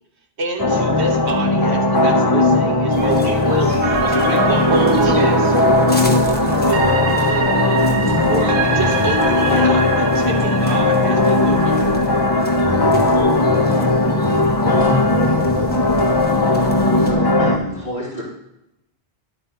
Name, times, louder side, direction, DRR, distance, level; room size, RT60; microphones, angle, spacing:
voice 1, 0.4-5.5 6.5-7.6 8.3-11.8, right 3 dB, 85° right, 2 dB, 1.2 m, -28 dB
sound 1, 0.6-17.6, left 2 dB, 30° left, 0.6 m, -17 dB
sound 2, 2.9-17.1, equal, 10° left, 1.0 m, -36 dB
sound 3, 3.8-13.8 14.2-14.3, right 5 dB, 65° right, 1.1 m, -24 dB
voice 2, 7.9-8.3 8.7-9.1 12.6-13.1 13.4-13.8 14.2-15.7, left 2 dB, 10° right, 1 dB, 1.2 m, -27 dB
voice 3, 16.7-18.2, equal, 70° left, -12 dB, 3.1 m, -28 dB
11.0 x 8.0 x 2.8 m, 0.85 s
omnidirectional pair, 1.1 m